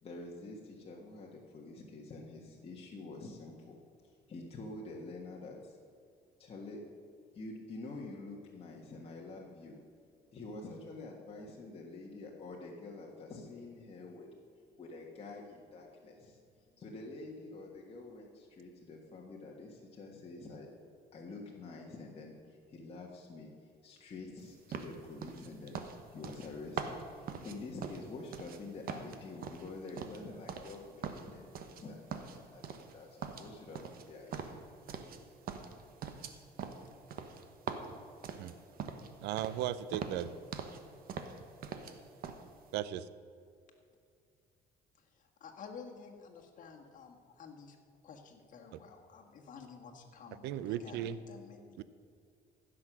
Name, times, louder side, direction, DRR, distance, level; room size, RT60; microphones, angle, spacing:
voice 1, 0.0-5.8 6.4-6.8 7.3-9.8 10.3-14.3 14.8-16.4 16.8-20.7 21.1-25.8 26.1-34.6, left 3 dB, 35° left, 1.5 m, -47 dB
sound 1, 24.7-28.6 28.9-30.8 31.0-31.8 32.1-32.9 33.2-35.2 35.5-39.1 39.4-39.6 39.9-40.8 41.1-41.9 42.2-42.4, right 6 dB, 60° right, 1.1 m, -42 dB
voice 2, 39.2-40.3 42.7-43.0 50.4-51.2 51.8-51.9, right 11 dB, 85° right, 0.6 m, -36 dB
voice 3, 45.4-47.8 48.0-51.8, left 5 dB, 50° left, 1.7 m, -51 dB
15.5 x 6.3 x 6.2 m
cardioid pair, 110°, 17 cm